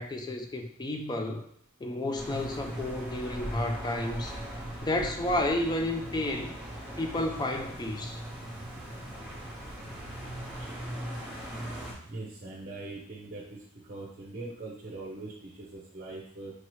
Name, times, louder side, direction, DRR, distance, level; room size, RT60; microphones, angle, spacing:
voice 1, 0.0-1.5 1.8-4.4 4.8-6.6 7.0-8.2, left 1 dB, 20° left, 5 dB, 0.3 m, -31 dB
sound 1, 2.1-11.9, right 1 dB, 5° right, 0.9 m, -40 dB
voice 2, 12.0-13.6 13.9-16.5, right 2 dB, 40° right, -3 dB, 0.6 m, -41 dB
4.6 x 2.8 x 3.0 m, 0.70 s
head